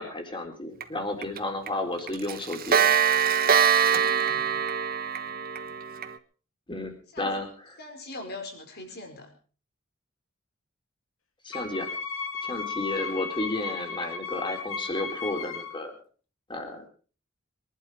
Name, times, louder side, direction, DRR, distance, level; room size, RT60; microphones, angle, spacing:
voice 1, 0.0-3.0 6.7-7.5 11.4-11.9 12.4-15.9 16.5-16.9, left 2 dB, 25° left, 4 dB, 3.9 m, -32 dB
Clock, 0.8-0.9 1.2-1.4 1.7-1.8 2.1-6.1, right 8 dB, 45° right, 1.2 m, -23 dB
voice 2, 3.7-4.6 7.1-7.4 7.8-9.3, left 2 dB, 50° left, 4 dB, 4.9 m, -42 dB
Wind instrument woodwind instrument, 11.5-15.8, left 5 dB, 75° left, 2.5 m, -35 dB
23.5 x 11.5 x 4.9 m, 0.40 s
head